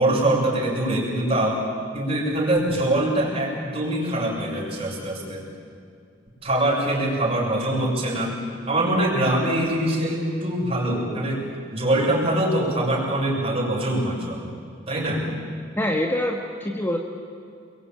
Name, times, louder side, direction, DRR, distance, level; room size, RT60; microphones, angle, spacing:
voice 1, 0.0-1.6 1.9-5.4 6.4-8.3 8.7-11.4 11.7-14.5 14.9-15.2, right 1 dB, 30° right, -2 dB, 6.7 m, -23 dB
voice 2, 15.8-17.0, left 1 dB, 10° left, 1 dB, 1.6 m, -25 dB
28.5 x 23.0 x 9.0 m, 2.4 s
head